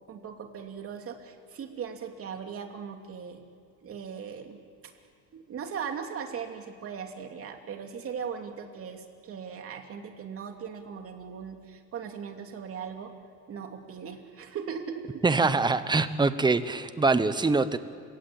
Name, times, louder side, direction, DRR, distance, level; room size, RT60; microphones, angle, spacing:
voice 1, 0.1-3.4 3.8-4.6 5.3-13.1 13.5-15.2, right 7 dB, 45° right, 4 dB, 2.8 m, -39 dB
voice 2, 15.2-17.8, right 3 dB, 15° right, 12 dB, 1.0 m, -24 dB
29.5 x 17.5 x 8.6 m, 2.3 s
cardioid pair, 135°, 32 cm